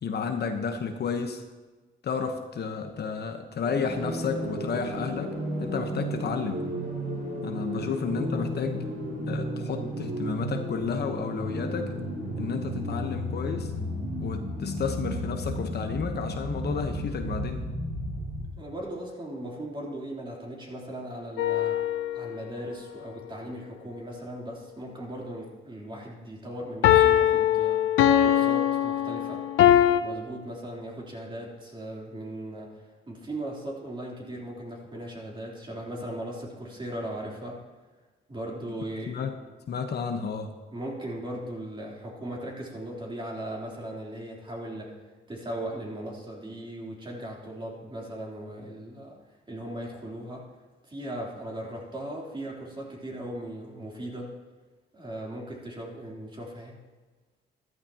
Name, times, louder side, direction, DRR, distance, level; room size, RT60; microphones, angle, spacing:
voice 1, 0.0-1.4 2.0-6.6 7.4-8.8 9.3-12.0 12.4-13.7 14.2-17.6 39.1-39.3 39.7-40.6, left 6 dB, 55° left, 5 dB, 1.1 m, -31 dB
sound 1, 3.6-18.6, equal, 45° right, 4.5 m, -33 dB
voice 2, 18.6-21.9 22.1-27.8 28.2-29.4 30.0-37.6 38.3-39.2 40.7-45.0 45.3-49.2 49.5-50.5 50.9-54.3 54.9-56.8, right 1 dB, 25° right, -2 dB, 3.4 m, -38 dB
sound 2, 21.4-22.4 26.8-30.0, left 11 dB, 90° left, 0.7 m, -21 dB
14.0 x 13.0 x 2.9 m, 1.3 s
cardioid pair, 90°, 20 cm